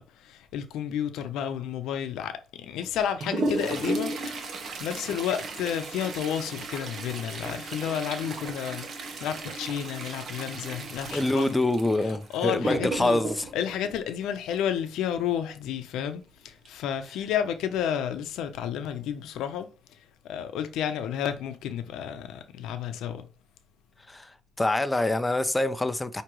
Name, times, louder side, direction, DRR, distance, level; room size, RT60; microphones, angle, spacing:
voice 1, 0.0-4.4 4.7-8.9 9.2-11.5 12.0-13.2 13.5-19.7 20.2-23.3, left 9 dB, 85° left, 0.7 m, -31 dB
Toilet flush, 2.8-14.8 16.6-16.7 17.1-17.2 18.0-18.1 18.7-19.0 19.4-19.6, right 2 dB, 55° right, 1.2 m, -35 dB
voice 2, 11.1-13.5 24.1-24.3 24.6-26.2, left 2 dB, 15° left, 0.5 m, -25 dB
6.0 x 2.9 x 3.0 m
cardioid pair, 90°, 0 cm